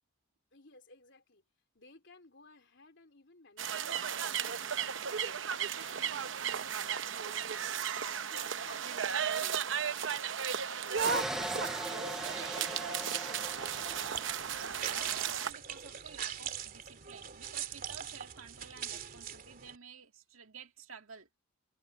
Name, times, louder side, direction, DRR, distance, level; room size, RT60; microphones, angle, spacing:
voice 1, 0.5-1.4 1.7-4.6 5.0-5.4 5.7-7.7 8.3-9.7 10.8-11.2 11.7-12.9 13.2-15.0, left 3 dB, 60° left, 4.3 m, -57 dB
sound 1, 3.6-15.5, right 7 dB, 65° right, 0.8 m, -35 dB
voice 2, 10.6-11.0 14.5-21.3, right 6 dB, 85° right, 2.1 m, -52 dB
sound 2, 10.9-14.8, right 1 dB, ahead, 0.3 m, -40 dB
sound 3, 13.6-19.8, right 9 dB, 45° right, 2.8 m, -42 dB
head